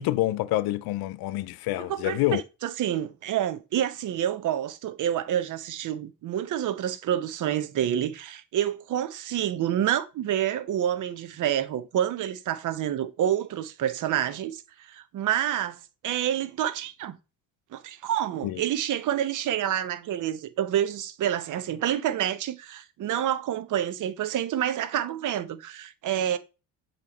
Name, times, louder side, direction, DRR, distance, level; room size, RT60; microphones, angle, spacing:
voice 1, 0.0-2.4 18.4-18.6, left 16 dB, 75° left, 0.6 m, -27 dB
voice 2, 1.9-14.6 14.9-15.8 16.0-17.2 17.7-26.4, right 10 dB, 55° right, 0.9 m, -28 dB
7.4 x 3.1 x 4.2 m
cardioid pair, 110°, 36 cm